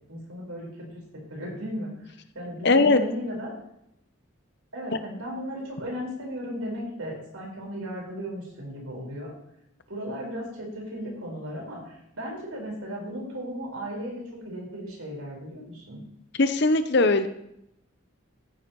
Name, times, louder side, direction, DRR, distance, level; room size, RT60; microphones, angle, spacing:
voice 1, 0.1-1.0 1.3-1.9 2.3-3.5 4.7-9.3 9.9-16.0, equal, 80° right, -2 dB, 5.1 m, -36 dB
voice 2, 2.6-3.0 16.4-17.3, left 3 dB, 50° left, 10 dB, 0.8 m, -19 dB
14.5 x 9.9 x 3.1 m, 0.78 s
head